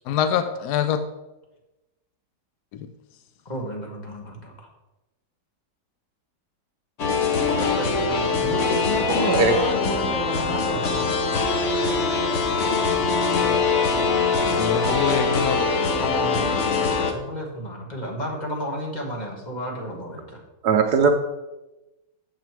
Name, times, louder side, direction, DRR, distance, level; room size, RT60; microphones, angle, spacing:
voice 1, 0.1-1.0 2.7-2.9 14.6-15.7, left 8 dB, 75° left, 10 dB, 0.9 m, -25 dB
voice 2, 3.4-4.7 7.5-11.1 16.0-20.4, equal, 25° left, 0 dB, 1.4 m, -32 dB
sound 1, 7.0-17.1, left 4 dB, 50° left, 0.9 m, -23 dB
voice 3, 9.1-9.6 20.6-21.1, right 5 dB, 70° right, 5 dB, 1.0 m, -19 dB
7.5 x 7.5 x 4.5 m, 1.0 s
omnidirectional pair, 2.2 m